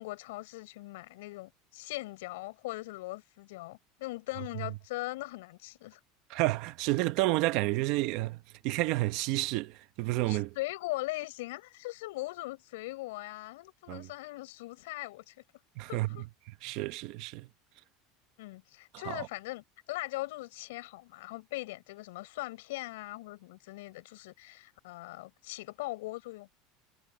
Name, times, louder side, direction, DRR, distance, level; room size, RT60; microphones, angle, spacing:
voice 1, 0.0-6.0 10.3-15.3 15.9-16.2 18.4-26.5, left 20 dB, 80° left, 6.5 m, -40 dB
voice 2, 6.3-8.4 8.6-10.5 13.9-14.1 15.8-16.1 16.6-17.5 19.1-19.3, right 19 dB, 45° right, 0.9 m, -30 dB
supercardioid pair, 180°, 0 cm